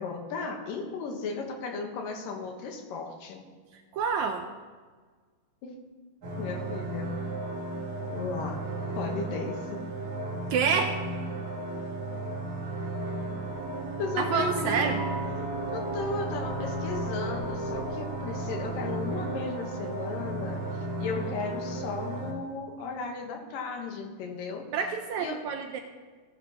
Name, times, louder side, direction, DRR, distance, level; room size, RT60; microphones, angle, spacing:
voice 1, 0.0-3.5 5.6-5.8 6.4-7.1 8.0-8.6 8.9-9.8 14.0-14.9 15.3-20.6 21.0-24.7 25.2-25.4, left 4 dB, 85° left, 3 dB, 2.9 m, -35 dB
voice 2, 3.9-4.5 10.5-11.0 14.2-15.0 24.7-25.8, right 6 dB, 80° right, 5 dB, 1.7 m, -28 dB
sound 1, 6.2-22.3, right 2 dB, 60° right, 3.1 m, -34 dB
17.5 x 9.9 x 3.0 m, 1.5 s
omnidirectional pair, 3.9 m